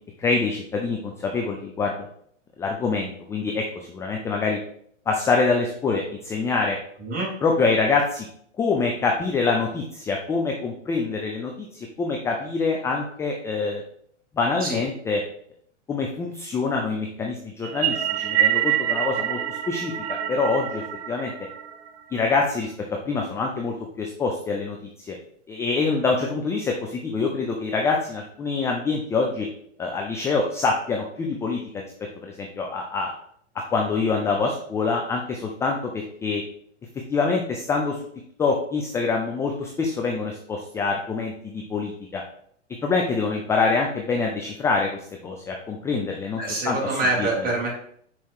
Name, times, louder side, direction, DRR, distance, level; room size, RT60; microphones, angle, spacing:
voice 1, 0.2-2.1 2.6-4.6 5.1-6.8 7.4-8.2 8.6-13.8 14.4-15.2 15.9-21.3 22.1-22.7 23.1-24.8 25.1-25.2 25.5-29.5 29.8-31.9 32.2-33.1 33.7-36.4 37.1-38.0 38.4-42.2 42.8-46.4 46.6-46.8 47.2-47.3, left 4 dB, 10° left, 1 dB, 0.3 m, -25 dB
voice 2, 7.0-7.3 14.6-14.8 46.4-47.7, right 2 dB, 25° right, -3 dB, 2.6 m, -25 dB
sound 1, 17.6-22.2, right 11 dB, 50° right, 0.8 m, -26 dB
5.7 x 4.3 x 4.5 m, 0.64 s
hypercardioid pair, 115°, 38 cm